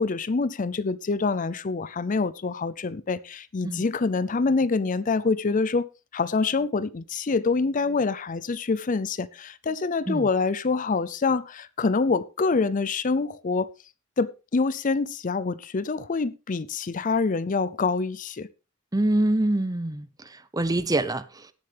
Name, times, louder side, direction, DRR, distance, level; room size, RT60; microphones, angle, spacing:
voice 1, 0.0-5.9 6.1-13.7 14.2-18.5, left 4 dB, 40° left, 0.5 m, -26 dB
voice 2, 18.9-21.5, right 1 dB, 15° right, 0.7 m, -25 dB
17.5 x 7.7 x 3.4 m
head